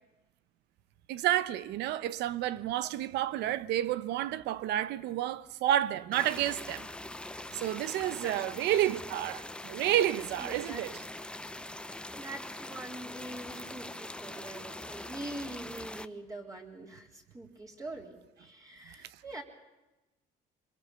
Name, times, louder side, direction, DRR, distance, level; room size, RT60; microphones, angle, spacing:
voice 1, 1.1-6.9 7.5-11.0, right 12 dB, 85° right, 0.9 m, -30 dB
sound 1, 6.1-16.1, left 1 dB, 5° left, 0.8 m, -43 dB
voice 2, 8.2-8.7 10.4-10.8 12.2-19.4, right 2 dB, 20° right, 3.8 m, -44 dB
24.5 x 22.5 x 6.9 m
cardioid pair, 110°, 17 cm